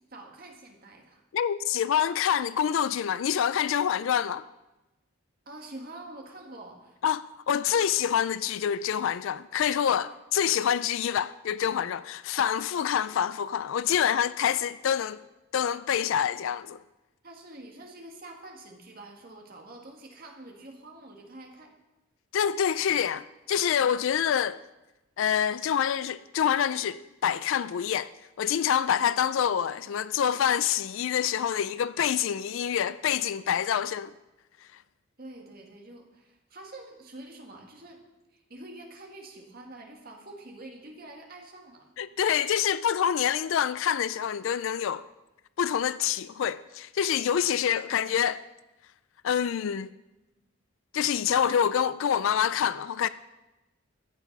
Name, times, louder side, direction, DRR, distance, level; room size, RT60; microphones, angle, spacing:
voice 1, 0.1-1.2 5.5-7.0 17.2-21.7 35.2-38.0 38.3-41.9, right 2 dB, 45° right, 1.9 m, -46 dB
voice 2, 1.3-4.4 7.0-15.2 15.5-16.8 22.3-24.6 25.2-28.1 28.4-34.1 42.0-45.0 45.6-48.4 49.2-49.9 50.9-53.1, left 8 dB, 65° left, 0.3 m, -26 dB
14.0 x 9.4 x 5.3 m
head